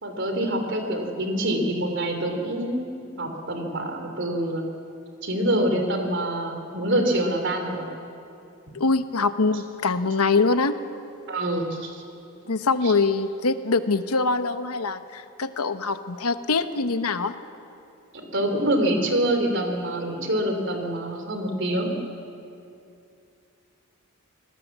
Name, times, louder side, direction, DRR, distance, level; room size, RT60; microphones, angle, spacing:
voice 1, 0.0-4.6 5.2-7.9 11.3-12.0 12.8-12.9 18.3-21.9, right 1 dB, 55° right, 5 dB, 3.4 m, -26 dB
voice 2, 8.7-10.7 12.5-17.3, left 3 dB, 85° left, 10 dB, 1.0 m, -23 dB
26.0 x 19.5 x 7.4 m, 2.6 s
head